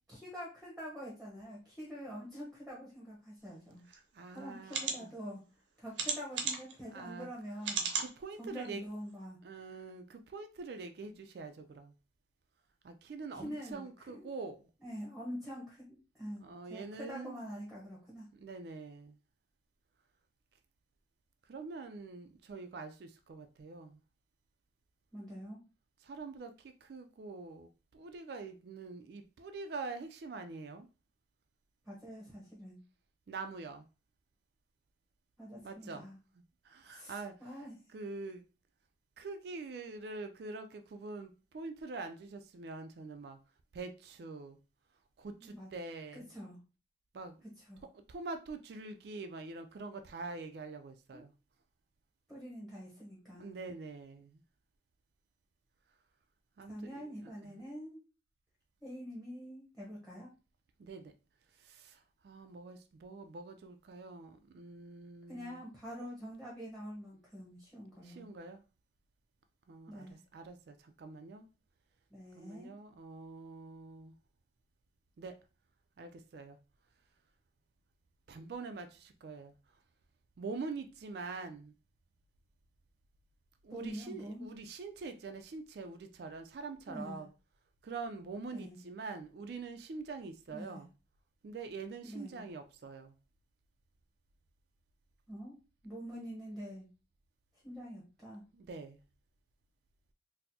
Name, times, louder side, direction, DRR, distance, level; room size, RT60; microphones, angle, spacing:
voice 1, 0.1-3.8 4.3-5.4 5.8-7.9 8.4-9.4 13.3-14.3 14.8-16.4 16.7-18.3 25.1-25.6 31.8-32.8 35.4-36.2 36.9-37.8 45.4-45.7 46.1-46.6 47.7-47.8 51.1-51.2 52.3-53.6 56.7-58.0 58.8-60.3 65.3-68.2 69.9-70.2 72.1-72.7 83.7-84.5 86.9-87.2 88.4-88.8 90.5-90.8 92.0-92.4 95.3-95.6 95.8-96.8 97.6-98.4, equal, ahead, 0.8 m, -45 dB
voice 2, 3.9-5.1 6.9-7.3 8.0-8.8 9.4-11.9 12.8-14.6 16.4-17.4 18.3-19.2 21.5-24.0 26.0-30.9 33.3-33.9 35.6-36.1 36.6-37.4 37.9-38.4 39.2-43.4 43.7-44.6 45.2-46.3 47.1-47.4 48.1-51.3 53.4-54.4 56.6-57.6 60.8-61.1 61.6-65.6 68.0-68.6 69.7-71.5 72.4-74.1 75.2-75.4 76.0-76.6 78.3-79.6 80.4-81.7 83.6-87.3 87.8-90.9 91.4-93.1 98.5-99.0, right 3 dB, 60° right, 0.3 m, -45 dB
sound 1, 3.9-4.0 4.7-5.0 6.0-6.7 7.6-8.1 8.7-8.8 9.1-9.2, right 5 dB, 90° right, 0.7 m, -34 dB
4.2 x 2.0 x 2.7 m
head